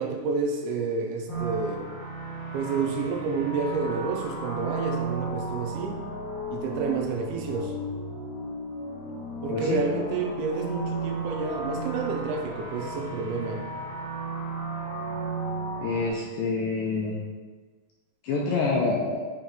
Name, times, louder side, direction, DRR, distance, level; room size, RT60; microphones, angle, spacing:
voice 1, 0.0-1.9 2.5-6.0 6.5-7.7 9.4-13.6, right 4 dB, 80° right, 1 dB, 2.6 m, -29 dB
sound 1, 1.3-16.1, right 2 dB, 55° left, 1.2 m, -34 dB
voice 2, 9.5-9.8 15.8-17.2 18.2-19.2, left 3 dB, 80° left, -2 dB, 2.0 m, -27 dB
8.6 x 3.0 x 3.6 m, 1.4 s
omnidirectional pair, 4.5 m